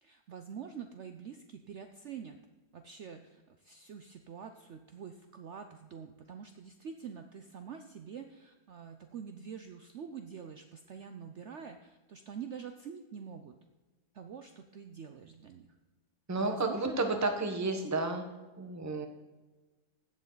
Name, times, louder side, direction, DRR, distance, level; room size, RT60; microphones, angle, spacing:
voice 1, 0.0-2.4 2.7-13.5 14.1-15.7 16.4-17.2 17.8-17.9, right 7 dB, 80° right, 7 dB, 0.6 m, -46 dB
voice 2, 16.3-18.3 18.6-19.1, right 3 dB, 15° right, 5 dB, 0.6 m, -31 dB
15.5 x 7.5 x 3.9 m, 1.2 s
omnidirectional pair, 2.0 m